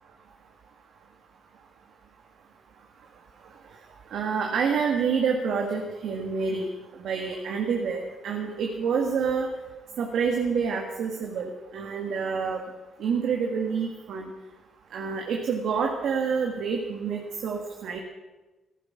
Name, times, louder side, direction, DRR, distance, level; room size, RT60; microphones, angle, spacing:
voice 1, 4.1-6.7 7.0-9.5 10.0-12.6 13.0-14.3 14.9-18.0, right 6 dB, 70° right, 1 dB, 1.8 m, -27 dB
15.5 x 14.5 x 6.2 m, 1.2 s
cardioid pair, 90°, 0 cm